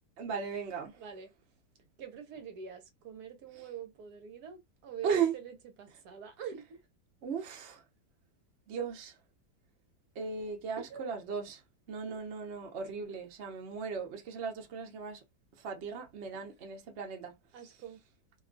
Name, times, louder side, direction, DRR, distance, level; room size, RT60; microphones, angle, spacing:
voice 1, 0.2-1.0 5.0-5.3 7.2-7.8 8.7-9.1 10.2-11.6 11.9-15.2 15.6-17.3, right 6 dB, 55° right, 0.8 m, -36 dB
voice 2, 1.0-1.3 2.0-6.8 10.8-11.2 12.1-12.2 16.3-16.4 17.5-18.0, right 8 dB, 70° right, 1.2 m, -45 dB
2.9 x 2.2 x 2.5 m
omnidirectional pair, 1.8 m